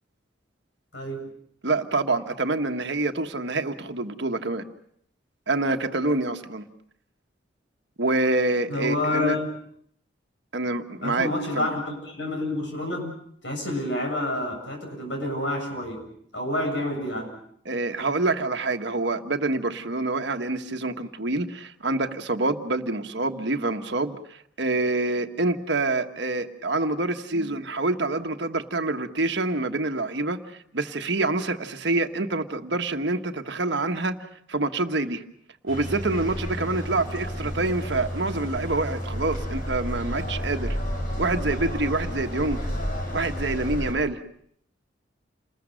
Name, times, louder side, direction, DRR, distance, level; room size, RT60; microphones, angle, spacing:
voice 1, 0.9-1.3 8.7-9.5 11.0-16.1 16.3-17.3 27.3-27.5, left 1 dB, 70° left, 3 dB, 7.6 m, -29 dB
voice 2, 1.6-4.6 5.5-6.7 8.0-9.4 10.5-11.3 11.5-11.7 17.6-34.2 34.5-35.2 35.6-40.8 41.2-42.6 43.1-44.2, right 2 dB, 65° right, 6 dB, 1.4 m, -26 dB
sound 1, 35.7-43.9, equal, 45° left, 7.2 m, -31 dB
28.5 x 21.0 x 6.4 m, 0.65 s
head